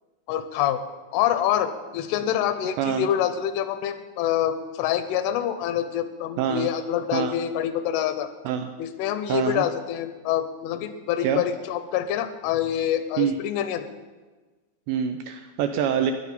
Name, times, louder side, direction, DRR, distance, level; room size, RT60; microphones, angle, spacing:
voice 1, 0.3-0.8 1.1-8.3 8.8-13.8, left 10 dB, 80° left, 10 dB, 3.2 m, -26 dB
voice 2, 6.4-6.7 7.1-7.4 8.5-8.7 9.3-9.6 11.2-11.4 13.2-13.4 14.9-16.1, right 8 dB, 80° right, 7 dB, 2.6 m, -25 dB
14.0 x 10.5 x 5.3 m, 1.3 s
omnidirectional pair, 5.6 m